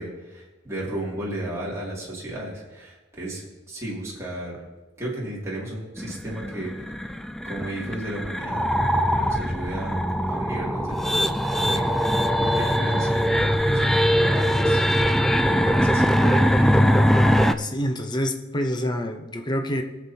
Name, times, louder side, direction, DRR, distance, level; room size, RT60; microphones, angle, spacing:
voice 1, 0.0-4.6 5.0-6.9 7.4-8.7 9.1-16.9, right 1 dB, 15° right, -6 dB, 2.4 m, -35 dB
sound 1, 6.0-17.5, equal, ahead, 0.3 m, -21 dB
voice 2, 17.6-19.8, equal, 20° left, 4 dB, 0.7 m, -27 dB
21.0 x 7.3 x 2.8 m, 1.1 s
head